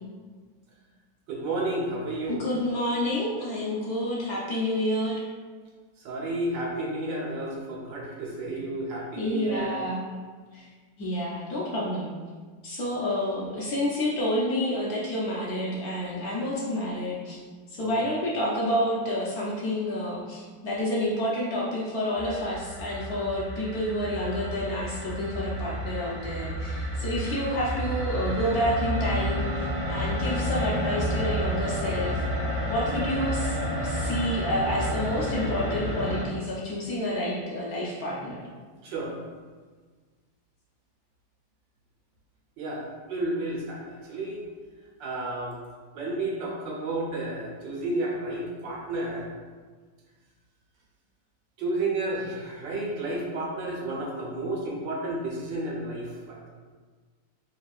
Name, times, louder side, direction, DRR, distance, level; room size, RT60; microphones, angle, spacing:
voice 1, 1.3-2.4 6.0-9.7 17.8-18.0 38.8-39.1 42.6-44.4 45.0-45.5 45.9-49.3 51.6-56.5, right 2 dB, 75° right, -3 dB, 1.5 m, -31 dB
voice 2, 2.3-5.2 9.1-10.2 10.5-10.7 11.0-12.1 12.6-17.4 17.7-32.2 32.7-33.6 33.8-38.4, equal, 60° left, -5 dB, 1.1 m, -29 dB
sound 1, 22.2-36.2, equal, 35° left, 1.0 m, -30 dB
5.0 x 3.6 x 2.4 m, 1.5 s
omnidirectional pair, 2.1 m